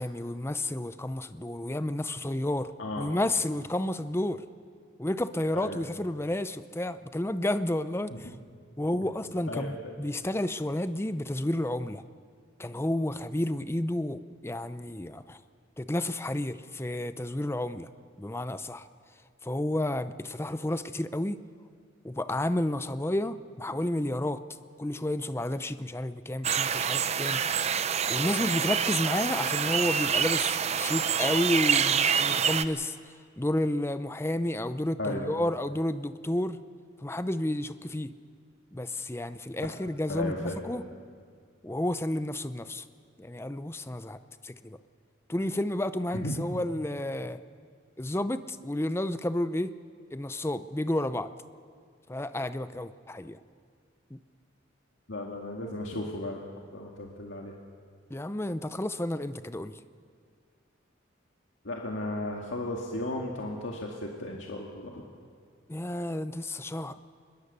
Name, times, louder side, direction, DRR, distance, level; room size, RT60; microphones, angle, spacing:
voice 1, 0.0-2.7 3.0-4.4 5.0-8.4 8.8-12.0 12.6-15.4 15.8-17.9 18.2-18.9 19.4-21.4 22.0-24.4 24.8-27.6 28.1-33.0 33.4-36.6 37.0-38.1 38.7-40.8 41.6-42.8 43.2-44.8 45.3-47.4 48.0-49.7 50.1-51.3 52.1-53.4 54.1-54.2 58.1-59.8 65.7-67.0, left 1 dB, 15° left, 12 dB, 0.6 m, -31 dB
voice 2, 9.5-9.9 35.0-35.2 40.1-40.6 46.1-46.3 55.1-56.4 56.7-57.5 61.6-65.0, left 1 dB, 70° left, 0 dB, 2.0 m, -35 dB
sound 1, 26.4-32.7, right 7 dB, 35° right, 0.6 m, -27 dB
23.5 x 21.0 x 6.8 m, 2.1 s
head